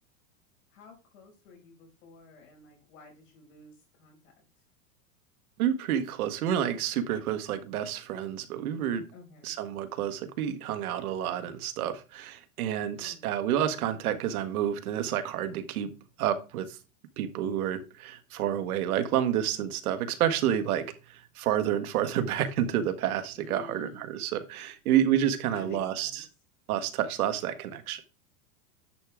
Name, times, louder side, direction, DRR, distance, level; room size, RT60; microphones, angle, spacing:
voice 1, 0.7-4.3 9.1-9.6 12.9-13.3 23.3-24.1 25.5-26.2, left 3 dB, 70° left, 5.8 m, -51 dB
voice 2, 5.6-9.0 9.4-15.9 16.2-16.8 17.2-26.2 26.7-28.0, right 10 dB, 80° right, 1.4 m, -29 dB
10.5 x 6.4 x 3.6 m
supercardioid pair, 170°, 43 cm